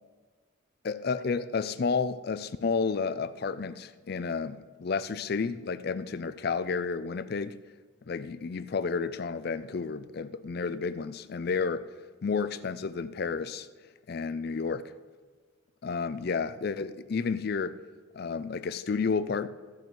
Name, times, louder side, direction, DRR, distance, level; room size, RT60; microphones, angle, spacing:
voice 1, 0.8-7.6 8.1-11.9 12.2-13.7 14.1-14.9 15.8-17.8 18.1-19.5, left 5 dB, 50° left, 0.4 m, -31 dB
14.5 x 5.3 x 6.1 m
head